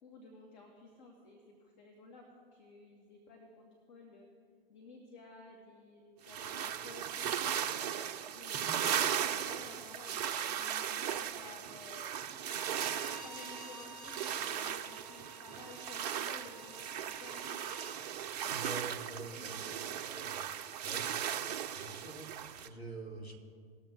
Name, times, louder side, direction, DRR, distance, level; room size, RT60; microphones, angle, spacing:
voice 1, 0.0-2.2 2.5-4.3 4.7-7.6 8.3-12.6 13.2-17.6 18.4-18.8 19.3-20.0 22.4-22.6 23.0-23.1, left 2 dB, 50° left, 0 dB, 1.9 m, -54 dB
sound 1, 6.3-22.7, right 9 dB, 40° right, 0.7 m, -37 dB
Bowed string instrument, 12.4-18.0, left 1 dB, ahead, 0.8 m, -53 dB
voice 2, 18.5-19.5 20.1-20.4 20.8-21.2 21.7-23.5, right 3 dB, 90° left, 0 dB, 2.4 m, -45 dB
20.5 x 7.1 x 3.8 m, 2.1 s
figure-of-eight pair, 105°, 31 cm